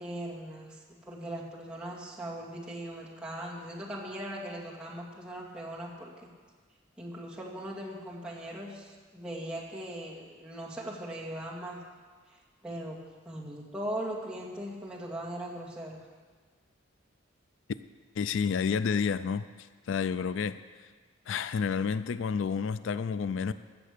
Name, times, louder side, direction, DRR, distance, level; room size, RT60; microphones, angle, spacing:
voice 1, 0.0-6.3 7.0-11.8 12.3-13.0 13.2-16.0, right 1 dB, 5° right, -6 dB, 2.2 m, -39 dB
voice 2, 18.2-19.5 19.9-20.9 21.3-23.5, left 6 dB, 70° left, 14 dB, 0.4 m, -30 dB
15.5 x 7.0 x 6.7 m, 1.5 s
head